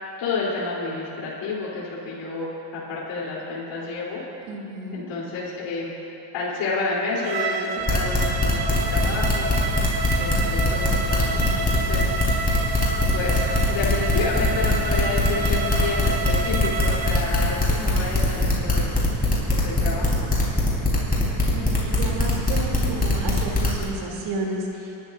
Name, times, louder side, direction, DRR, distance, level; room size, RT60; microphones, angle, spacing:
voice 1, 0.2-4.2 4.9-5.9 6.3-9.6 10.2-12.1 13.1-18.9 19.5-20.4, left 3 dB, 75° left, -7 dB, 3.6 m, -30 dB
voice 2, 4.4-5.0 14.9-15.2 15.6-15.7 21.5-24.9, right 2 dB, 75° right, -2 dB, 3.1 m, -32 dB
Bowed string instrument, 7.2-17.2, right 4 dB, 55° right, 1.2 m, -29 dB
sound 1, 7.9-23.8, left 2 dB, 20° left, 4.1 m, -21 dB
sound 2, 8.7-18.6, right 1 dB, 5° left, 1.3 m, -40 dB
28.5 x 12.5 x 2.6 m, 2.9 s
cardioid pair, 100°, 44 cm